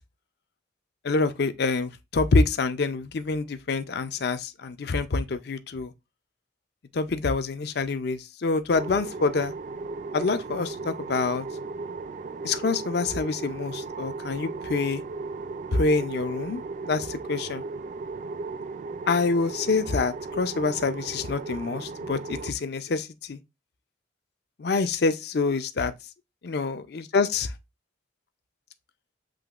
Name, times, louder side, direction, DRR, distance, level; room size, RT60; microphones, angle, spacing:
voice 1, 1.0-5.9 6.9-9.5 10.1-11.5 12.4-15.0 15.7-17.6 19.1-23.4 24.6-25.9 26.4-27.5, left 3 dB, 60° left, 0.5 m, -26 dB
sound 1, 8.7-22.5, right 3 dB, 40° right, 0.3 m, -36 dB
7.6 x 2.9 x 2.4 m
head